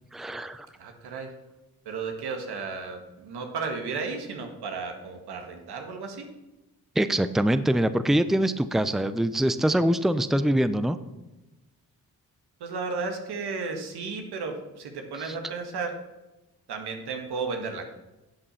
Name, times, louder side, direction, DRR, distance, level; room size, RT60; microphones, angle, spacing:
voice 1, 0.1-0.7 7.0-11.0 15.2-15.3, right 1 dB, ahead, 12 dB, 0.7 m, -24 dB
voice 2, 0.8-1.3 1.9-6.3 12.6-16.0 16.7-17.9, right 4 dB, 80° right, 4 dB, 1.9 m, -34 dB
11.5 x 7.6 x 5.8 m, 1.0 s
supercardioid pair, 55°, 38 cm